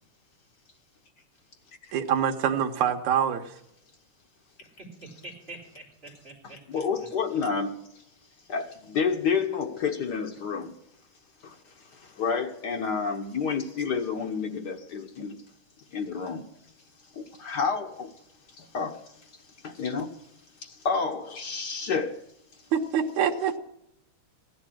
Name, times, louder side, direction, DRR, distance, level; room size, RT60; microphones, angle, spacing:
voice 1, 1.9-3.6 22.7-23.6, right 8 dB, 85° right, 2.5 m, -25 dB
voice 2, 4.6-7.1, right 2 dB, 20° right, 4.2 m, -46 dB
voice 3, 6.7-7.8 8.5-10.7 11.4-11.6 11.9-15.4 15.9-16.5 17.1-18.1 18.6-19.0 19.6-20.1 20.6-22.2, left 5 dB, 85° left, 0.9 m, -29 dB
15.5 x 11.0 x 6.2 m
omnidirectional pair, 3.3 m